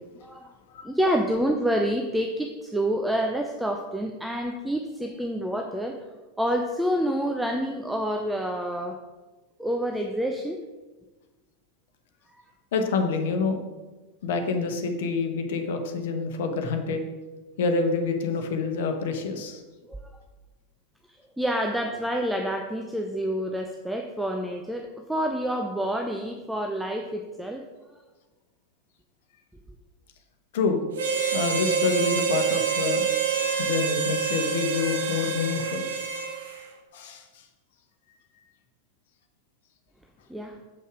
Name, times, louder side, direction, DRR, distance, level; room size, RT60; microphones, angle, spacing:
voice 1, 0.2-0.6 0.8-6.0 6.4-9.0 9.6-10.6 12.3-12.4 19.9-20.1 21.1-27.6 27.9-28.0 40.3-40.6, equal, 5° right, 3 dB, 0.6 m, -28 dB
voice 2, 12.7-13.6 14.2-17.0 17.6-19.6 30.5-30.9 31.3-33.0 33.6-35.9 36.9-37.2, left 4 dB, 55° left, 5 dB, 1.0 m, -27 dB
Harmonica, 31.0-36.6, right 5 dB, 60° right, 1.1 m, -26 dB
7.3 x 5.5 x 4.7 m, 1.2 s
figure-of-eight pair, 90°, 0 cm